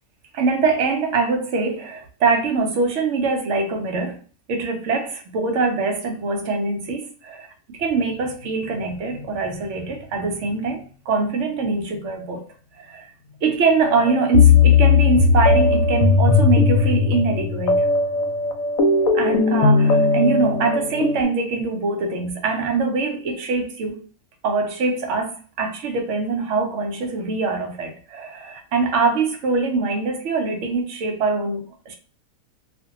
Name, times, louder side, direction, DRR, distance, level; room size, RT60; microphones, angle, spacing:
voice 1, 0.3-4.2 4.5-12.4 12.8-13.1 13.4-17.9 19.1-24.0 24.4-32.0, right 4 dB, 65° right, 0.8 m, -23 dB
sound 1, 13.8-21.2, left 4 dB, 75° left, 0.9 m, -17 dB
2.5 x 2.1 x 2.7 m
omnidirectional pair, 1.5 m